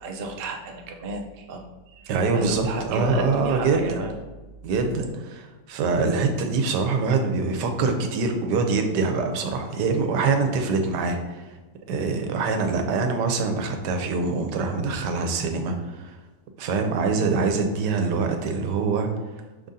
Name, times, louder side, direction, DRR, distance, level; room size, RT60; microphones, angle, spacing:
voice 1, 0.0-4.1, right 2 dB, 65° right, 2 dB, 0.5 m, -33 dB
voice 2, 2.1-4.0 4.6-11.5 11.9-16.1 16.6-19.1, right 4 dB, 85° right, 5 dB, 1.2 m, -24 dB
5.4 x 3.7 x 2.7 m, 1.2 s
omnidirectional pair, 1.8 m